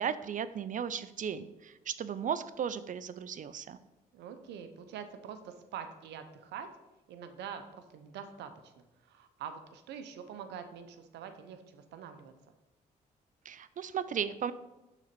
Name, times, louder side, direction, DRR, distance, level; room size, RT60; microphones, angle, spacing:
voice 1, 0.0-3.8 13.5-14.5, right 8 dB, 50° right, 14 dB, 0.5 m, -35 dB
voice 2, 4.1-6.7 7.1-8.7 9.0-12.3, right 7 dB, 85° right, 9 dB, 0.7 m, -45 dB
6.0 x 3.9 x 5.9 m, 0.98 s
supercardioid pair, 65°, 17 cm